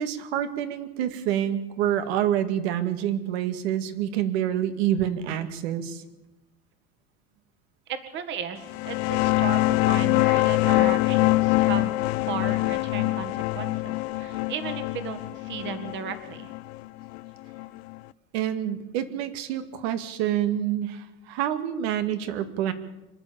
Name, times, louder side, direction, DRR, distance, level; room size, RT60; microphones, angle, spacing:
voice 1, 0.0-6.0 18.3-22.7, right 11 dB, 80° right, 9 dB, 2.1 m, -27 dB
voice 2, 7.9-11.9 12.2-16.5, right 7 dB, 35° right, 8 dB, 1.8 m, -35 dB
sound 1, 8.7-18.0, left 21 dB, 85° left, 0.7 m, -24 dB
26.5 x 11.5 x 8.7 m, 1.0 s
cardioid pair, 160°, 31 cm